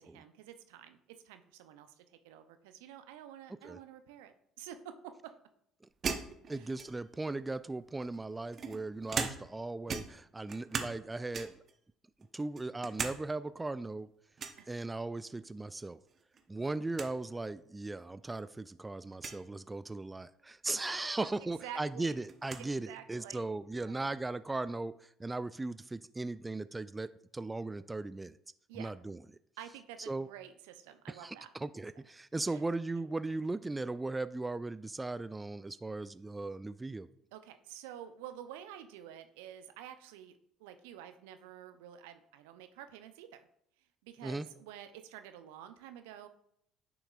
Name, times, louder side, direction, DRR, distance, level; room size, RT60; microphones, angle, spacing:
voice 1, 0.0-5.3 6.5-6.8 14.6-14.8 16.5-16.7 20.7-20.9 21.2-22.2 22.6-23.5 23.8-24.1 28.7-28.9 29.6-31.5 32.5-32.6 32.9-33.1 37.3-43.5 44.0-46.3, right 10 dB, 75° right, 9 dB, 0.6 m, -50 dB
sound 1, 6.0-7.2 8.0-9.6 9.9-11.0 11.3-11.7 12.2-13.2 13.5-13.6 14.4-14.6 16.1-16.4 16.7-16.8 16.9-17.1 17.9-18.0 19.1-19.4 21.1-21.2 21.5-22.7, right 5 dB, 40° right, 0.9 m, -39 dB
voice 2, 6.5-11.5 12.3-14.1 14.7-16.0 16.5-28.4 28.7-29.2 30.1-30.3 31.1-37.1 44.2-44.5, right 2 dB, 15° right, 15 dB, 0.3 m, -38 dB
9.8 x 6.0 x 2.4 m, 0.72 s
hypercardioid pair, 55°, 0 cm